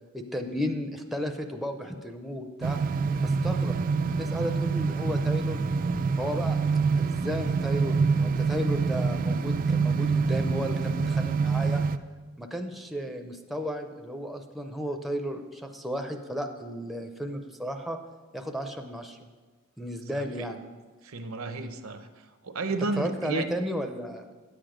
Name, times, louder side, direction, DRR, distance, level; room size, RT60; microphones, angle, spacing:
voice 1, 0.1-2.8 3.2-5.6 6.2-6.6 7.0-11.8 12.4-18.0 18.3-19.2 19.8-20.6 23.0-24.4, equal, ahead, 4 dB, 0.6 m, -34 dB
sound 1, 2.6-12.0, right 4 dB, 40° right, 0.3 m, -26 dB
voice 2, 21.0-22.1 22.4-23.4, right 3 dB, 75° right, 9 dB, 0.7 m, -32 dB
9.6 x 7.8 x 5.0 m, 1.3 s
head